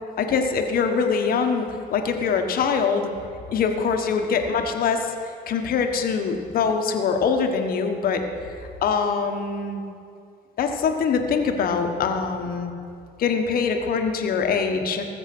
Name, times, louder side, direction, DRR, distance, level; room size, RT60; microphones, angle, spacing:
voice 1, 0.2-3.1 3.5-5.1 5.5-9.8 10.6-12.7 13.2-15.1, left 5 dB, 60° left, 5 dB, 1.3 m, -23 dB
19.0 x 7.4 x 6.1 m, 2.4 s
cardioid pair, 110°, 17 cm